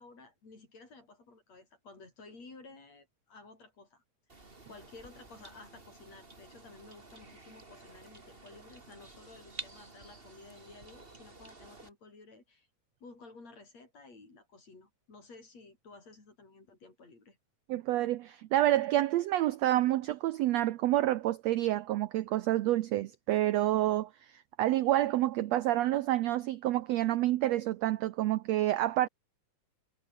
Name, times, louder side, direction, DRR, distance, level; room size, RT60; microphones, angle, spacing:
voice 1, 0.0-4.0 4.3-4.4 4.7-12.7 13.0-17.4, left 3 dB, 50° left, 8.0 m, -54 dB
sound 1, 4.3-11.9, right 3 dB, 20° right, 2.6 m, -51 dB
voice 2, 17.7-29.1, right 14 dB, 75° right, 1.5 m, -28 dB
omnidirectional pair, 3.8 m